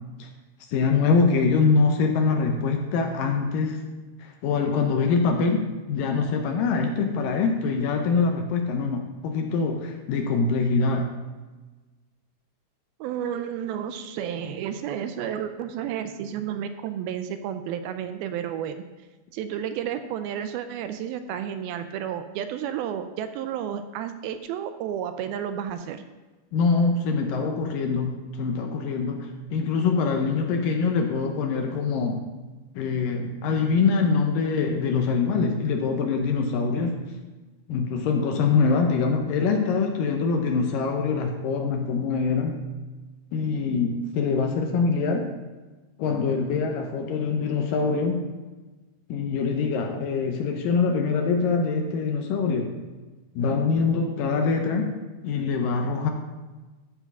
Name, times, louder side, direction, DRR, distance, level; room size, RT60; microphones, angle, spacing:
voice 1, 0.7-3.8 4.2-5.6 5.9-11.1 26.5-32.2 32.8-37.0 37.7-42.6 43.3-45.3 46.0-48.3 49.1-52.8 53.4-54.9 55.2-56.1, left 4 dB, 75° left, 4 dB, 2.2 m, -24 dB
voice 2, 13.0-18.8 19.3-26.0, right 9 dB, 80° right, 9 dB, 2.3 m, -31 dB
14.0 x 4.9 x 5.4 m, 1.2 s
omnidirectional pair, 4.5 m